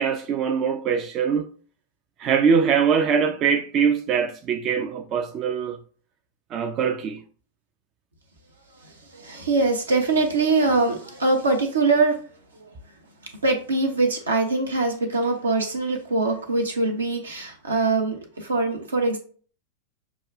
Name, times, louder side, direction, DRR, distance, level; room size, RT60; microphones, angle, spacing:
voice 1, 0.0-1.5 2.2-5.8 6.5-7.2, right 6 dB, 35° right, 0.3 m, -22 dB
voice 2, 8.8-12.2 13.4-19.2, right 3 dB, 75° right, 0.8 m, -23 dB
6.0 x 2.3 x 2.4 m
figure-of-eight pair, 90°, 0 cm